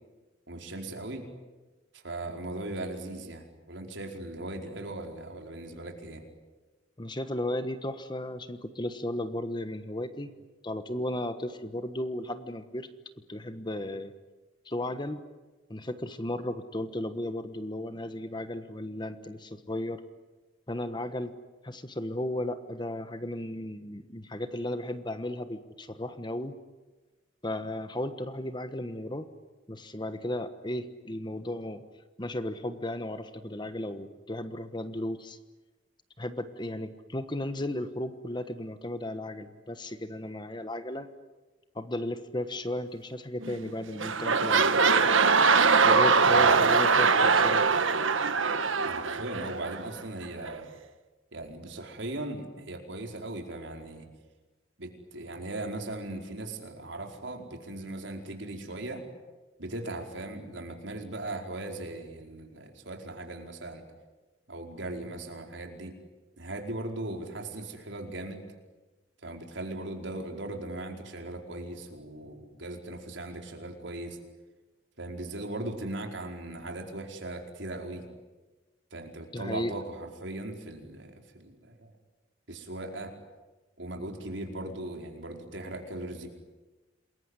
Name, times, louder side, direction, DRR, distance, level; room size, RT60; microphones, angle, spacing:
voice 1, 0.5-1.3 1.9-6.2 45.9-46.6 48.8-50.7 51.3-54.1 54.8-59.0 59.6-63.8 64.5-66.0 66.4-68.5 69.2-74.2 75.0-78.1 78.9-81.9 82.5-83.1 83.8-86.3, right 2 dB, 65° right, 3 dB, 4.7 m, -38 dB
voice 2, 7.0-10.3 10.6-12.9 13.3-14.1 14.6-15.2 15.7-20.0 20.7-21.3 21.6-26.6 27.4-29.3 29.7-31.8 32.2-35.4 36.2-41.1 41.7-44.8 45.8-47.7 79.3-79.7, left 1 dB, 25° left, 10 dB, 1.3 m, -35 dB
sound 1, 43.4-43.7 44.0-49.8 50.5-50.6, right 5 dB, 85° right, 1.6 m, -22 dB
28.0 x 21.5 x 9.8 m, 1.2 s
head